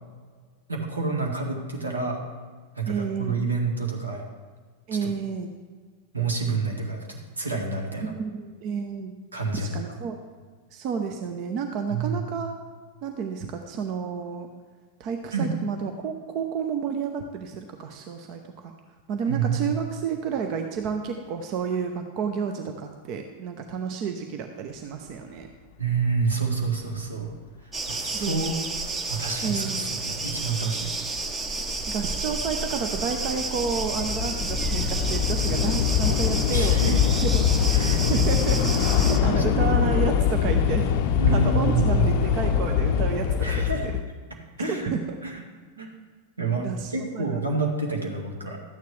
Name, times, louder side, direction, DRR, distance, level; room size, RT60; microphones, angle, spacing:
voice 1, 0.7-2.2 2.8-4.2 5.0-5.1 6.1-8.1 9.3-9.7 11.9-12.2 15.3-15.5 19.3-19.7 25.8-27.3 27.9-28.5 28.8-31.0 36.5-36.9 37.7-38.7 39.2-39.7 41.2-42.1 43.4-43.8 44.6-44.9 45.2-45.4 45.8-45.9 46.4-46.7 46.9-48.6, right 4 dB, 75° right, 1 dB, 1.7 m, -28 dB
voice 2, 2.9-3.5 4.9-5.5 8.0-9.1 9.5-10.2 10.7-12.5 13.0-14.5 15.0-18.7 19.1-25.5 28.1-28.4 29.4-29.9 31.9-37.4 38.1-38.6 39.0-40.9 41.3-43.9 44.7-45.0 46.6-47.4, right 6 dB, 40° right, 5 dB, 0.7 m, -30 dB
sound 1, 27.7-39.2, right 3 dB, 15° right, 0.9 m, -31 dB
Train / Subway metro underground, 30.0-30.1 30.9-31.2 31.4-44.0, left 8 dB, 45° left, 0.5 m, -23 dB
12.5 x 9.3 x 3.3 m, 1.5 s
figure-of-eight pair, 90°, 0 cm